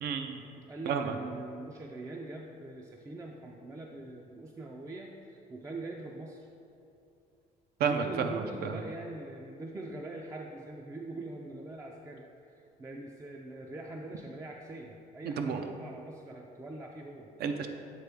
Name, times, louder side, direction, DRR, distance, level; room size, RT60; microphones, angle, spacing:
voice 1, 0.0-0.4 0.9-1.1 7.8-8.8 15.2-15.6 17.4-17.7, right 6 dB, 70° right, 6 dB, 0.6 m, -31 dB
voice 2, 0.5-6.5 7.8-17.3, right 2 dB, 20° right, 0 dB, 0.4 m, -43 dB
8.2 x 3.9 x 3.4 m, 2.6 s
cardioid pair, 110°, 17 cm